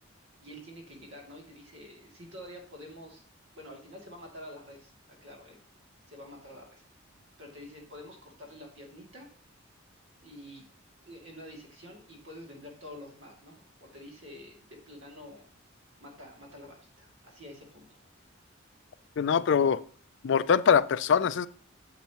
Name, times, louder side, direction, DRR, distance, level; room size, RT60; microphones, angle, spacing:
voice 1, 0.4-3.2 3.5-5.6 6.1-6.8 7.4-9.3 10.2-10.7 11.0-15.5 16.0-18.0, left 1 dB, 65° right, 0 dB, 2.5 m, -48 dB
voice 2, 19.2-19.8 20.2-21.5, left 7 dB, 60° left, 16 dB, 0.4 m, -23 dB
8.7 x 7.3 x 2.9 m, 0.44 s
head